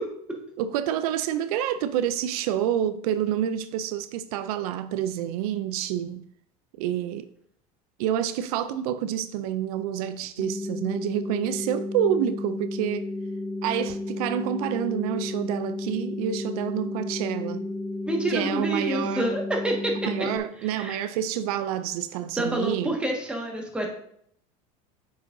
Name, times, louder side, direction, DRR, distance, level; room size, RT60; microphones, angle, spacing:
voice 1, 0.6-6.2 6.8-7.3 8.0-13.1 13.6-17.7 18.3-19.3 20.0-22.9, right 10 dB, 80° right, 0.5 m, -28 dB
sound 1, 10.4-20.4, left 2 dB, 10° left, 0.6 m, -33 dB
voice 2, 18.0-20.0 20.6-21.0 22.4-23.9, right 1 dB, 5° right, 1.6 m, -28 dB
8.4 x 6.2 x 2.7 m
supercardioid pair, 115°, 19 cm